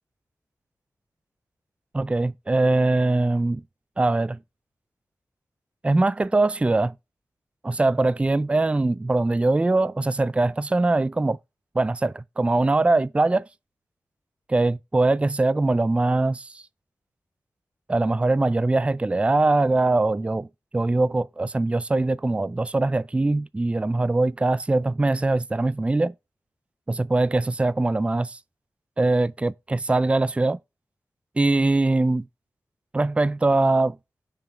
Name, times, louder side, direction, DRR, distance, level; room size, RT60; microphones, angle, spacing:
voice 1, 1.9-3.6 4.0-4.4 5.8-6.9 7.6-11.4 11.8-13.4 14.5-16.6 17.9-20.5 20.7-26.1 26.9-28.4 29.0-30.6 31.4-32.2 32.9-34.0, right 2 dB, 20° right, 0.3 m, -22 dB
6.6 x 6.1 x 4.4 m
cardioid pair, 70°, 7 cm